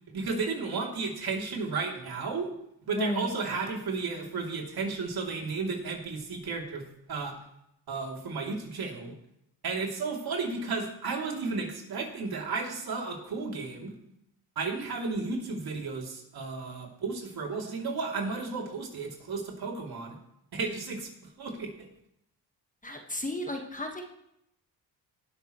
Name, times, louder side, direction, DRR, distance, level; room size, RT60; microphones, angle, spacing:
voice 1, 0.1-2.5 2.9-6.8 7.1-7.3 7.9-9.1 9.6-13.9 14.5-20.2 20.5-21.1 21.4-21.9, right 4 dB, 60° right, -1 dB, 2.9 m, -33 dB
voice 2, 2.9-3.3 22.8-24.0, left 1 dB, 20° left, 3 dB, 1.5 m, -33 dB
19.0 x 6.6 x 3.1 m, 0.77 s
supercardioid pair, 65°, 42 cm